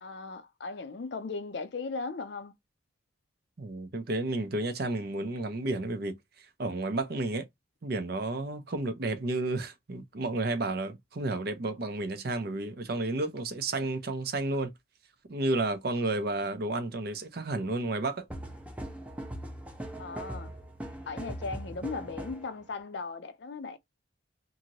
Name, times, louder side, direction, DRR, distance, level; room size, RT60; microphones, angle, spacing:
voice 1, 0.0-2.5 20.0-20.5 21.1-23.8, left 4 dB, 55° left, 0.4 m, -37 dB
voice 2, 3.6-7.5 7.8-14.7 15.3-18.2, right 2 dB, 50° right, 0.6 m, -32 dB
sound 1, 18.3-22.5, right 1 dB, 5° right, 0.5 m, -40 dB
2.8 x 2.6 x 2.8 m
head